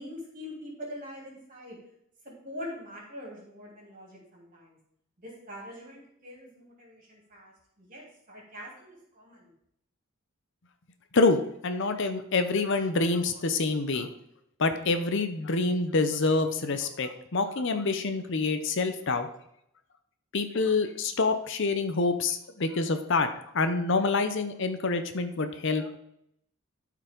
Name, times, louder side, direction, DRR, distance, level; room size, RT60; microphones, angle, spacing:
voice 1, 0.0-1.8 2.2-4.8 5.2-7.5 7.8-8.0 8.3-9.5, left 1 dB, 40° right, -3 dB, 3.3 m, -43 dB
voice 2, 11.6-14.1 14.6-19.3 20.3-25.9, left 3 dB, 55° left, 8 dB, 0.7 m, -27 dB
12.5 x 4.7 x 3.8 m, 0.76 s
head